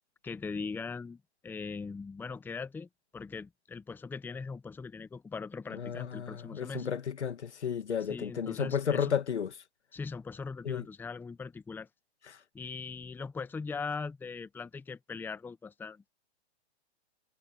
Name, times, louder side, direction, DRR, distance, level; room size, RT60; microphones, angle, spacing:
voice 1, 0.2-6.9 8.1-9.1 9.9-11.9 12.5-16.0, left 4 dB, 5° left, 0.9 m, -40 dB
voice 2, 5.7-9.5 10.6-10.9, left 7 dB, 85° left, 2.3 m, -33 dB
hypercardioid pair, 135°, 33 cm